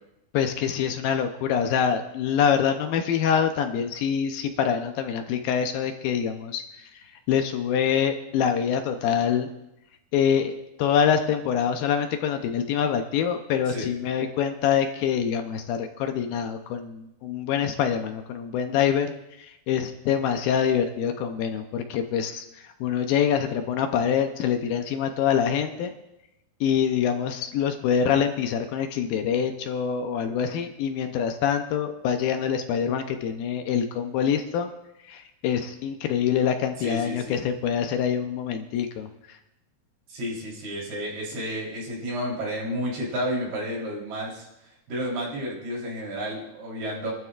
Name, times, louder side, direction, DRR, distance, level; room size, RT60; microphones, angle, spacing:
voice 1, 0.3-6.6 7.3-9.5 10.1-19.1 19.4-25.9 26.6-34.7 35.0-39.4, left 8 dB, 75° left, 6 dB, 2.5 m, -25 dB
voice 2, 36.8-37.4 40.1-47.1, equal, 75° right, -4 dB, 5.8 m, -31 dB
25.0 x 12.5 x 2.5 m, 0.90 s
omnidirectional pair, 4.5 m